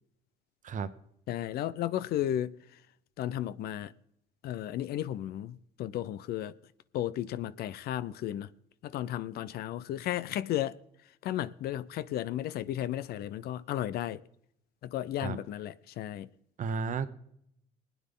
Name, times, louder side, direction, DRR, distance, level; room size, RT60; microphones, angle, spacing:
voice 1, 1.3-2.5 3.2-3.9 4.4-6.5 6.9-8.5 8.8-10.8 11.2-14.2 14.8-16.3, left 12 dB, 70° left, 0.6 m, -34 dB
voice 2, 16.6-17.1, right 5 dB, 50° right, 1.0 m, -32 dB
20.5 x 9.5 x 3.8 m
cardioid pair, 110°, 17 cm